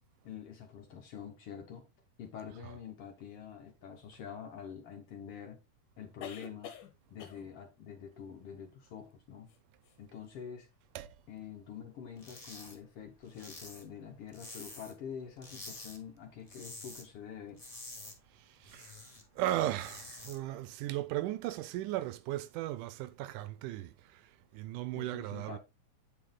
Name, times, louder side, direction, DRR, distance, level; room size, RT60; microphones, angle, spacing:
voice 1, 0.2-1.9 2.2-5.6 6.0-6.7 7.1-9.5 10.0-10.7 11.3-17.6 25.0-25.6, left 7 dB, 60° left, 1.7 m, -46 dB
sound 1, 4.1-4.2 6.2-6.9 7.2-7.5 9.5-9.6 9.8-10.0, left 8 dB, 85° left, 2.6 m, -47 dB
sound 2, 12.2-12.8 13.0-15.0 15.4-16.0 16.3-17.1 17.4-19.2 19.6-20.4, left 2 dB, 25° left, 0.7 m, -48 dB
voice 2, 18.6-19.0 19.4-24.3 24.5-25.6, right 14 dB, 90° right, 2.2 m, -36 dB
8.9 x 4.8 x 3.7 m
omnidirectional pair, 3.6 m